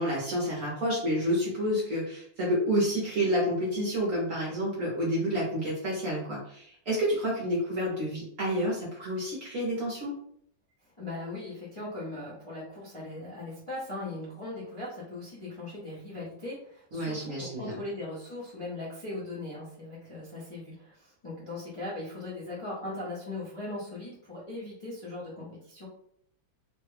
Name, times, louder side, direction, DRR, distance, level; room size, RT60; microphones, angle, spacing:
voice 1, 0.0-10.1 16.9-17.8, equal, 55° right, -4 dB, 1.0 m, -29 dB
voice 2, 11.0-25.9, left 2 dB, 30° left, -8 dB, 0.5 m, -39 dB
3.3 x 2.2 x 3.2 m, 0.67 s
omnidirectional pair, 2.1 m